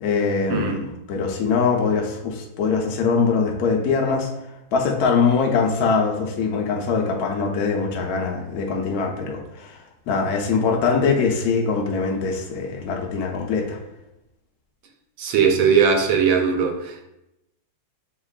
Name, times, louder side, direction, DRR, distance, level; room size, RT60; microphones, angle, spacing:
voice 1, 0.0-4.3 4.7-9.8 10.1-13.8, left 5 dB, 65° left, 1 dB, 1.0 m, -22 dB
voice 2, 15.2-17.0, right 6 dB, 80° right, 3 dB, 1.4 m, -19 dB
6.5 x 2.9 x 2.3 m, 0.89 s
omnidirectional pair, 2.1 m